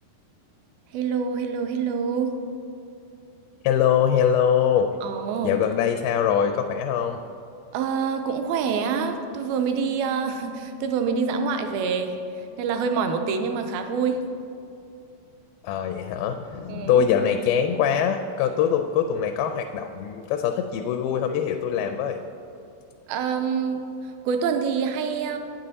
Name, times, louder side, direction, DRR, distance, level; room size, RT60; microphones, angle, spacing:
voice 1, 0.9-2.5 5.0-5.6 7.7-14.3 16.7-17.1 23.1-25.4, right 5 dB, 80° right, 6 dB, 2.3 m, -26 dB
voice 2, 3.6-4.9 5.4-7.2 15.6-22.2, left 8 dB, 80° left, 5 dB, 2.3 m, -23 dB
8.8 x 8.8 x 4.0 m, 2.6 s
omnidirectional pair, 4.6 m